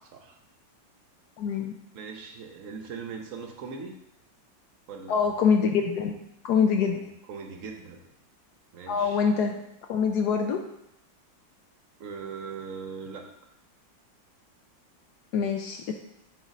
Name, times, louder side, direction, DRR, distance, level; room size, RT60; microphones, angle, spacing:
voice 1, 1.4-1.7 5.1-7.0 8.9-9.6 9.9-10.6 15.3-15.9, left 6 dB, 70° left, 4 dB, 1.0 m, -25 dB
voice 2, 1.9-3.9 4.9-5.3 6.8-8.0 8.7-9.2 12.0-13.3, right 5 dB, 55° right, 3 dB, 0.9 m, -40 dB
7.3 x 3.8 x 4.0 m, 0.77 s
omnidirectional pair, 2.1 m